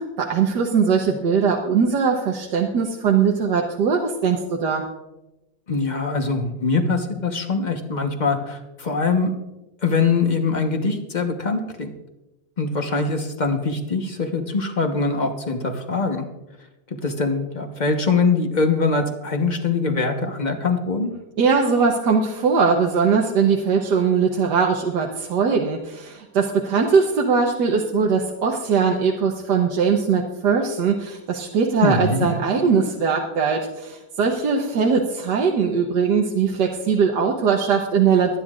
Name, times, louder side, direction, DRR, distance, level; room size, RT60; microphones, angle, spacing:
voice 1, 0.0-4.8 21.4-38.4, right 5 dB, 60° right, 0 dB, 1.5 m, -20 dB
voice 2, 5.7-9.3 9.8-11.9 12.6-16.2 16.9-21.1 31.8-32.3, left 4 dB, 30° left, 4 dB, 0.9 m, -23 dB
24.0 x 10.0 x 2.5 m, 0.97 s
omnidirectional pair, 2.2 m